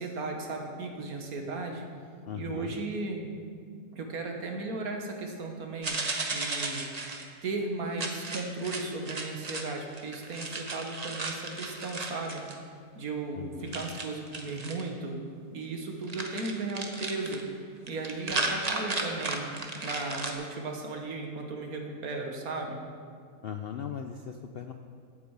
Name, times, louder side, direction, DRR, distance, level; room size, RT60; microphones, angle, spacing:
voice 1, 0.0-1.9 2.3-3.3 3.9-6.0 6.3-7.2 7.4-12.4 12.9-15.2 15.5-17.4 17.9-19.5 19.8-22.8, right 3 dB, 70° right, 3 dB, 1.7 m, -36 dB
voice 2, 2.3-2.8 13.3-13.8 23.4-24.7, left 7 dB, 65° left, 5 dB, 0.5 m, -39 dB
sound 1, 5.8-7.3 8.0-9.7 9.9-12.6 13.7-14.8 16.1-17.4 17.9-20.3, right 3 dB, 30° right, 0.9 m, -34 dB
8.6 x 8.5 x 8.0 m, 2.1 s
omnidirectional pair, 1.6 m